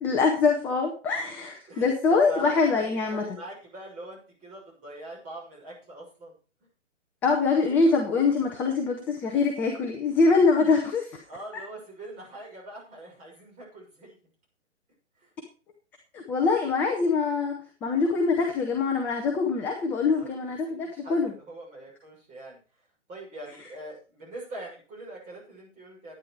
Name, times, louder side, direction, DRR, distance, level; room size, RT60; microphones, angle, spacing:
voice 1, 0.0-3.3 7.2-11.2 16.1-21.3, left 4 dB, 5° left, 2 dB, 0.4 m, -24 dB
voice 2, 1.7-6.3 11.3-14.2 15.2-15.3 20.1-20.5 20.8-22.6 23.1-26.1, right 1 dB, 20° right, -3 dB, 6.3 m, -42 dB
11.5 x 9.4 x 4.7 m, 0.36 s
figure-of-eight pair, 130°, 36 cm